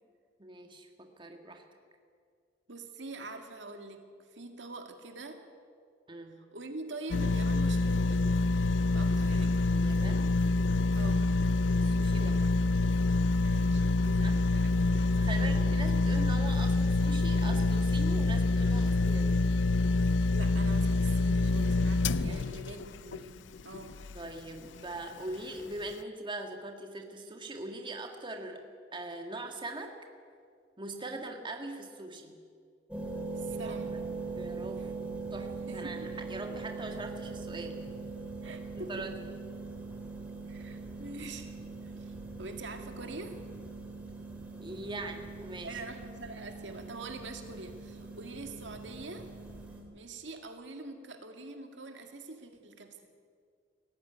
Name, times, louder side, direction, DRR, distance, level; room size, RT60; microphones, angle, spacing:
voice 1, 0.4-1.6 6.1-6.4 9.2-9.3 9.7-10.3 11.7-12.6 14.2-14.4 15.2-19.6 22.2-22.5 24.1-28.6 28.9-29.9 30.8-32.4 33.5-33.7 34.3-34.9 35.3-37.8 38.8-39.1 44.6-45.7, right 2 dB, 25° right, 4 dB, 1.8 m, -41 dB
voice 2, 2.7-5.4 6.4-8.3 8.9-9.6 10.9-11.3 13.4-15.8 19.7-19.8 20.3-24.0 33.4-34.0 35.7-36.1 38.4-39.1 40.5-41.6 41.8-43.4 45.6-49.3 49.9-53.0, right 2 dB, 75° right, 5 dB, 2.1 m, -44 dB
sound 1, 7.1-24.3 24.8-24.9, left 3 dB, 80° left, 0.5 m, -26 dB
sound 2, 32.9-49.8, right 3 dB, 5° right, 3.7 m, -41 dB
18.0 x 14.5 x 10.0 m, 2.2 s
head